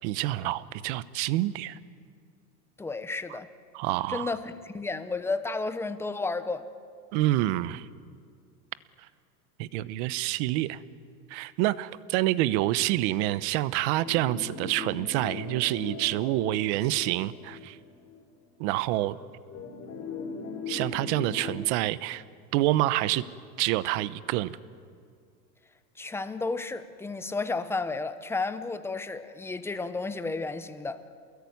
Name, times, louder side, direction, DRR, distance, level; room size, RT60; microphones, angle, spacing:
voice 1, 0.0-1.8 3.7-4.3 7.1-7.9 9.6-10.8 11.3-17.8 18.6-19.2 20.7-22.2 22.5-23.2 23.6-24.6, right 16 dB, 45° right, 16 dB, 1.0 m, -27 dB
voice 2, 2.8-3.5 4.1-6.6 26.0-31.0, left 3 dB, 5° left, 11 dB, 0.8 m, -32 dB
sound 1, 13.9-18.3 18.7-18.8 19.5-21.6, left 5 dB, 30° left, 4.4 m, -39 dB
28.5 x 21.5 x 9.6 m, 2.3 s
supercardioid pair, 140°, 50 cm